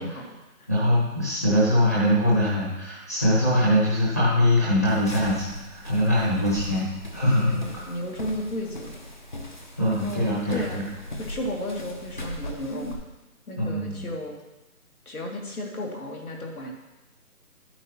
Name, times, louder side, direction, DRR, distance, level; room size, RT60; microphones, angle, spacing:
voice 1, 0.0-0.7 6.2-6.7 7.4-8.9 9.9-10.8 11.2-13.0 13.5-14.3 15.1-16.8, left 1 dB, 70° left, 0 dB, 2.7 m, -34 dB
voice 2, 0.7-7.9 9.8-10.8 13.6-14.1, left 1 dB, 10° left, -7 dB, 1.0 m, -23 dB
sound 1, 4.9-12.9, left 1 dB, 30° left, 0.9 m, -39 dB
12.5 x 8.9 x 3.0 m, 1.1 s
figure-of-eight pair, 175°, 45 cm